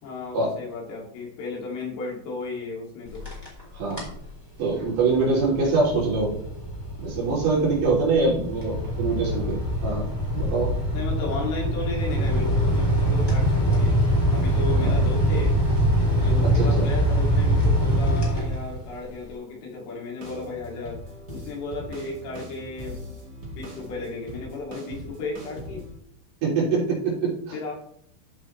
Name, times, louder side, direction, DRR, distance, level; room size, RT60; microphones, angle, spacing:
voice 1, 0.0-3.3 8.2-8.4 10.9-14.0 14.3-15.6 16.2-21.0 21.3-23.0 23.5-25.8 27.5-27.7, left 3 dB, 65° left, -2 dB, 4.5 m, -34 dB
sound 1, 3.1-3.6 3.9-4.2 4.7-19.0, equal, 5° left, 2.9 m, -23 dB
voice 2, 3.7-4.1 4.6-6.4 7.0-10.1 10.3-10.7 14.8-14.9 16.2-16.9 26.4-27.3, right 3 dB, 75° right, -5 dB, 5.5 m, -24 dB
sound 2, 20.2-25.9, equal, 30° right, 2.4 m, -41 dB
14.0 x 6.3 x 3.3 m, 0.70 s
omnidirectional pair, 4.9 m